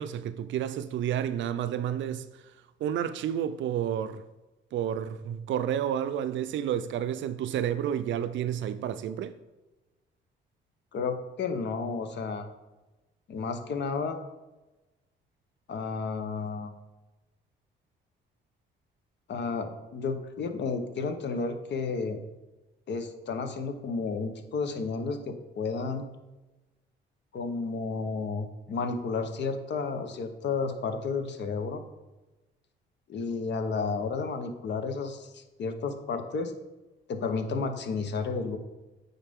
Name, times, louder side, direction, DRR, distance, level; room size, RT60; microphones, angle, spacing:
voice 1, 0.0-2.4 2.8-4.2 4.7-9.4, right 9 dB, 70° right, 0.5 m, -30 dB
voice 2, 10.9-12.5 13.3-14.2 15.7-16.7 19.3-22.2 22.9-26.0 27.3-31.8 33.1-36.5 37.1-38.6, left 4 dB, 60° left, 0.9 m, -32 dB
8.9 x 4.0 x 3.6 m
cardioid pair, 90°, 20 cm